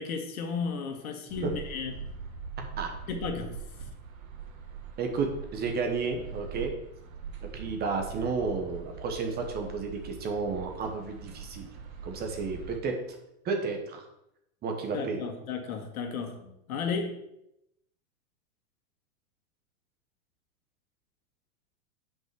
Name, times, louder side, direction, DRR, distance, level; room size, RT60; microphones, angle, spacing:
voice 1, 0.0-1.9 3.1-3.6 14.9-17.2, left 5 dB, 90° left, 5 dB, 1.8 m, -34 dB
sound 1, 1.3-12.8, right 5 dB, 75° right, 2.4 m, -42 dB
voice 2, 2.6-2.9 5.0-6.7 7.5-11.7 12.0-13.0 13.4-14.0 14.6-15.2, right 4 dB, 25° right, 3 dB, 1.2 m, -32 dB
6.4 x 5.3 x 6.9 m, 0.82 s
supercardioid pair, 150°, 42 cm